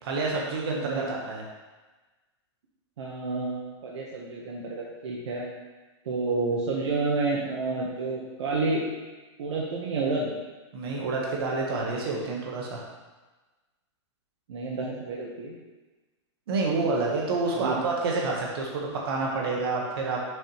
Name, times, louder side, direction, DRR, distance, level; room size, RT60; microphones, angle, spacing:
voice 1, 0.0-1.4 10.7-12.8 16.5-20.2, right 3 dB, 55° right, -2 dB, 1.6 m, -28 dB
voice 2, 3.0-5.5 6.0-8.8 9.4-10.3 14.5-15.5 17.5-17.8, right 3 dB, 70° right, -3 dB, 1.5 m, -29 dB
7.2 x 5.7 x 3.3 m, 1.2 s
supercardioid pair, 170°, 15 cm